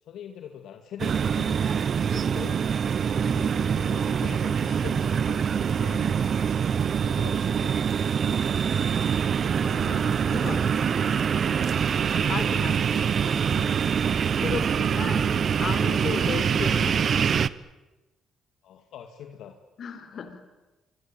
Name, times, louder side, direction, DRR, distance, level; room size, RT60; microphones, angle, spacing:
voice 1, 0.0-1.7 2.2-2.6 3.1-6.0 7.0-8.2 10.4-11.6 12.1-12.3 14.2-14.7 18.6-19.6 20.1-20.3, left 9 dB, 75° left, 5 dB, 2.2 m, -44 dB
sound 1, 1.0-17.5, right 7 dB, 50° right, 0.9 m, -24 dB
voice 2, 2.1-2.5 5.8-6.1 9.6-10.6 12.3-12.8 13.2-13.7 14.4-15.3 15.6-17.3 19.8-20.4, left 6 dB, 55° left, 10 dB, 4.3 m, -35 dB
26.5 x 24.0 x 9.1 m, 1.1 s
cardioid pair, 90°, 0 cm